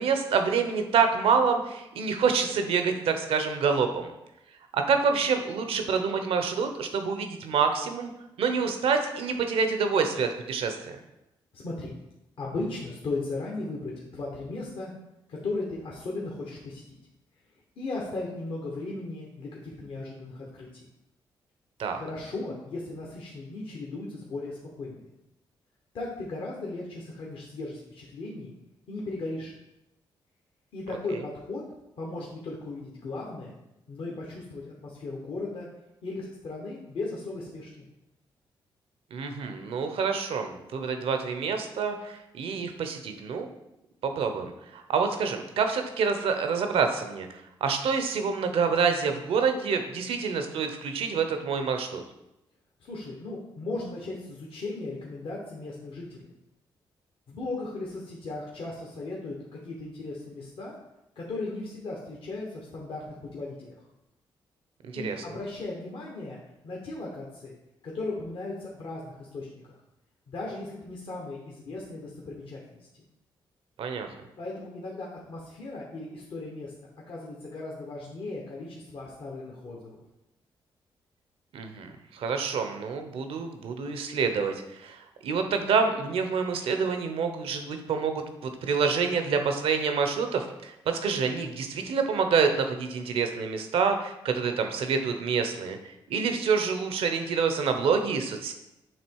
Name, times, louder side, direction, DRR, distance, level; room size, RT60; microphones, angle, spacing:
voice 1, 0.0-4.1 4.7-8.1 8.4-11.0 21.8-22.0 31.1-31.2 39.1-43.5 44.0-52.0 64.8-65.2 73.8-74.1 81.5-98.5, right 5 dB, 75° right, 6 dB, 0.7 m, -27 dB
voice 2, 11.5-11.9 12.4-14.9 15.3-17.0 17.8-20.9 21.9-25.1 25.9-28.5 28.9-29.5 30.7-31.6 32.0-33.5 33.9-35.7 36.0-37.8 52.8-56.3 57.3-60.7 61.2-63.9 64.9-67.6 67.8-69.5 70.3-72.6 74.4-76.7 77.1-80.0, left 2 dB, 70° left, -3 dB, 1.1 m, -36 dB
7.4 x 3.0 x 4.6 m, 0.90 s
cardioid pair, 65°, 10 cm